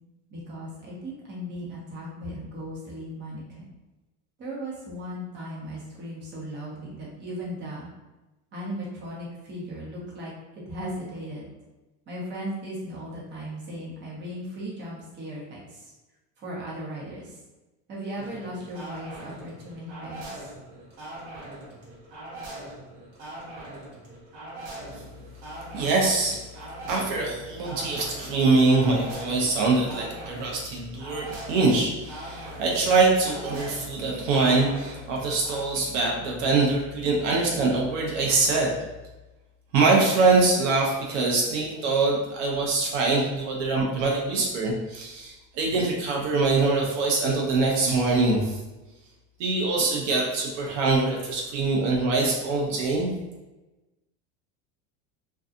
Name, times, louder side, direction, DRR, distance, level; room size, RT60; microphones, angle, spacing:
voice 1, 0.3-3.6 4.4-7.9 8.5-11.5 12.1-15.9 16.4-17.4 17.9-20.5, equal, 25° right, -6 dB, 0.9 m, -37 dB
sound 1, 18.2-35.6, right 1 dB, 55° right, 1.1 m, -42 dB
voice 2, 25.7-38.7 39.7-48.6 49.4-53.1, right 3 dB, 75° right, -2 dB, 0.7 m, -24 dB
2.6 x 2.3 x 2.4 m, 1.1 s
supercardioid pair, 140°, 39 cm